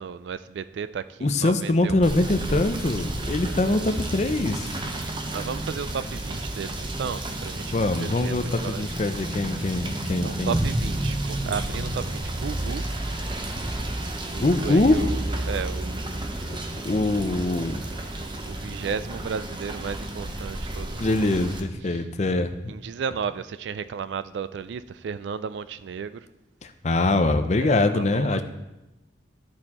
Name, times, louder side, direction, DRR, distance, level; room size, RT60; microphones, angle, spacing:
voice 1, 0.0-2.1 3.5-3.9 5.3-9.3 9.6-9.8 10.2-12.8 14.3-16.2 18.5-21.4 21.9-22.1 22.7-26.2 27.6-28.4, right 6 dB, 80° right, 14 dB, 0.3 m, -34 dB
voice 2, 1.2-4.7 7.7-10.7 14.4-15.0 16.8-17.8 21.0-22.7 26.6-28.4, left 2 dB, 40° left, 8 dB, 0.6 m, -23 dB
Rain / Motor vehicle (road), 2.0-21.6, right 1 dB, 25° right, 0.7 m, -31 dB
13.5 x 4.5 x 4.2 m, 0.96 s
head